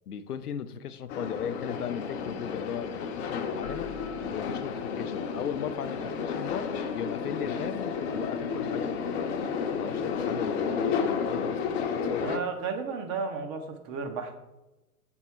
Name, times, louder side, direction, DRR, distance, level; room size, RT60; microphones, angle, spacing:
voice 1, 0.1-3.9 4.3-12.4, left 8 dB, 80° left, 11 dB, 0.6 m, -37 dB
sound 1, 1.1-12.4, left 6 dB, 45° left, 0.8 m, -32 dB
sound 2, 3.6-5.2, left 8 dB, 20° left, 0.4 m, -47 dB
voice 2, 12.2-14.3, right 5 dB, 25° right, 6 dB, 0.6 m, -33 dB
7.5 x 3.6 x 4.3 m, 1.0 s
figure-of-eight pair, 105°, 45 cm